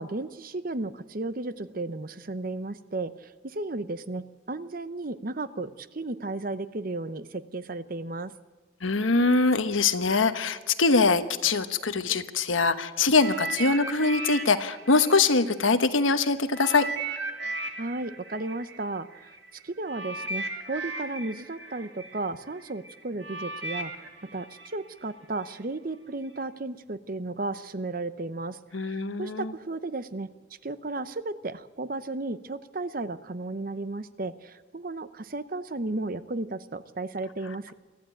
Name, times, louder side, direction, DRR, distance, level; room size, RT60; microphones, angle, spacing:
voice 1, 0.0-8.3 17.8-19.4 19.6-30.3 30.6-37.7, right 2 dB, 45° right, 13 dB, 0.8 m, -34 dB
voice 2, 8.8-16.9 28.7-29.5, left 3 dB, 90° left, 10 dB, 1.2 m, -23 dB
sound 1, 13.1-16.1 16.5-25.5 26.2-26.4, right 3 dB, 60° right, 2.4 m, -37 dB
24.0 x 14.5 x 9.0 m, 1.3 s
head